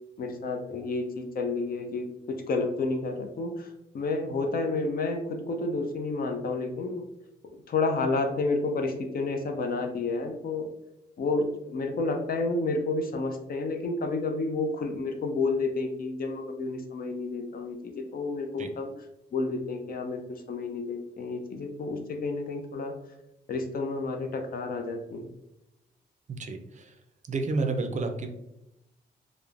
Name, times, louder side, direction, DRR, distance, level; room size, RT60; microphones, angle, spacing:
voice 1, 0.2-7.1 7.7-10.7 11.2-18.9 19.3-22.9 23.5-25.3, left 3 dB, 55° left, 4 dB, 0.5 m, -30 dB
voice 2, 26.3-27.0 27.3-28.3, right 3 dB, 40° right, 5 dB, 0.4 m, -30 dB
3.1 x 2.0 x 2.4 m, 0.87 s
cardioid pair, 70°, 18 cm